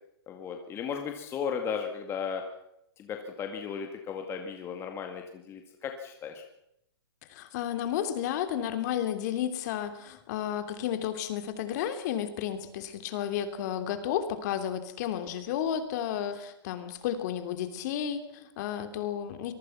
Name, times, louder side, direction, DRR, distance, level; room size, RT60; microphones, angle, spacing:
voice 1, 0.3-2.4 3.0-6.4, left 7 dB, 15° left, 4 dB, 2.1 m, -35 dB
voice 2, 7.3-19.5, left 10 dB, 40° left, 9 dB, 3.1 m, -32 dB
25.0 x 22.5 x 5.8 m, 0.78 s
hypercardioid pair, 155°, 14 cm